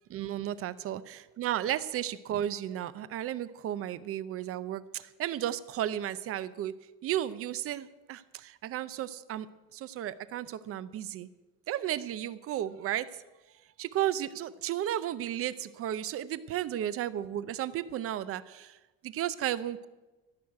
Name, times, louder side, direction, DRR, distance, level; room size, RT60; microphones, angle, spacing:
voice 1, 0.1-6.7 7.0-9.5 9.7-11.3 11.7-13.2 13.8-18.8 19.0-19.9, right 11 dB, 45° right, 16 dB, 0.6 m, -34 dB
14.0 x 6.4 x 9.5 m, 1.1 s
cardioid pair, 155°, 32 cm